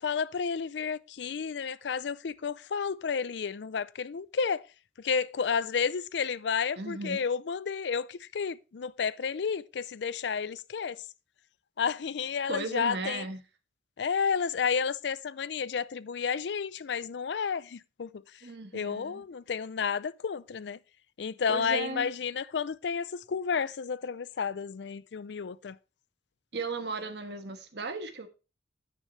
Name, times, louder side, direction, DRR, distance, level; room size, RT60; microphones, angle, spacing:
voice 1, 0.0-4.6 5.0-11.0 11.8-13.2 14.0-18.1 18.7-20.8 21.2-25.8, left 6 dB, 70° left, 0.4 m, -31 dB
voice 2, 6.8-7.2 12.5-13.4 18.4-19.2 21.5-22.1 26.5-28.3, right 3 dB, 65° right, 1.4 m, -36 dB
9.8 x 9.3 x 3.2 m
head